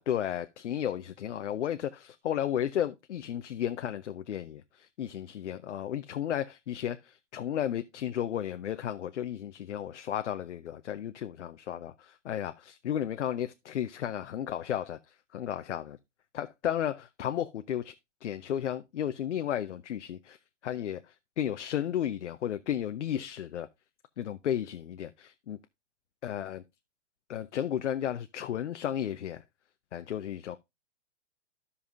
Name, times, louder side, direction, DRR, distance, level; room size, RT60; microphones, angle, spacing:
voice 1, 0.0-15.0 15.3-16.0 16.3-17.9 18.2-20.4 20.6-21.0 21.4-23.7 24.2-25.6 26.2-26.6 27.3-29.4 29.9-30.6, left 10 dB, 75° left, 0.7 m, -33 dB
14.5 x 5.6 x 2.5 m
hypercardioid pair, 130°, 36 cm